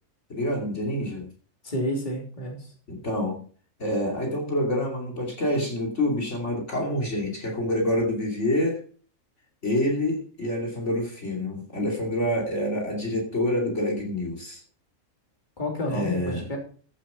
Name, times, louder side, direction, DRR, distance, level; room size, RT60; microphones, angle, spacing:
voice 1, 0.3-1.3 2.9-3.4 3.8-8.8 9.6-14.6 15.9-16.5, left 1 dB, 55° left, 0 dB, 3.1 m, -27 dB
voice 2, 1.6-2.7 15.6-16.6, left 1 dB, 35° left, 0 dB, 3.4 m, -30 dB
14.5 x 7.6 x 5.6 m, 0.43 s
omnidirectional pair, 1.4 m